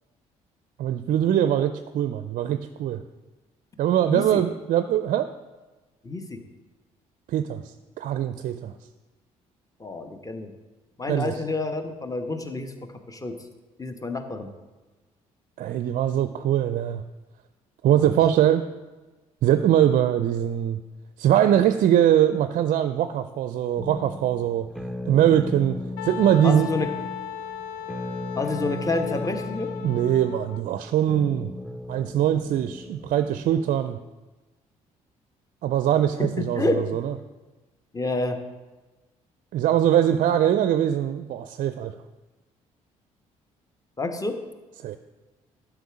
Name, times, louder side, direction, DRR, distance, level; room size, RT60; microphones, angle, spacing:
voice 1, 0.8-3.0 3.8-5.3 7.3-8.7 11.1-11.4 15.6-17.0 17.8-18.6 19.4-20.8 21.2-24.7 25.1-25.8 26.0-26.7 29.8-31.5 31.9-34.0 35.6-37.1 39.5-41.9 44.8-45.0, right 10 dB, 50° right, 11 dB, 0.4 m, -22 dB
voice 2, 4.1-4.4 6.0-6.4 9.8-10.5 11.0-12.7 13.1-13.4 13.8-14.5 17.9-18.1 26.4-26.9 28.4-29.7 36.2-37.0 37.9-38.4 44.0-44.4, left 2 dB, 20° left, 7 dB, 1.0 m, -28 dB
sound 1, 23.8-33.7, left 2 dB, ahead, 0.6 m, -36 dB
Wind instrument woodwind instrument, 26.0-30.6, left 8 dB, 70° left, 0.5 m, -36 dB
11.5 x 4.8 x 4.9 m, 1.2 s
figure-of-eight pair, 45°, 18 cm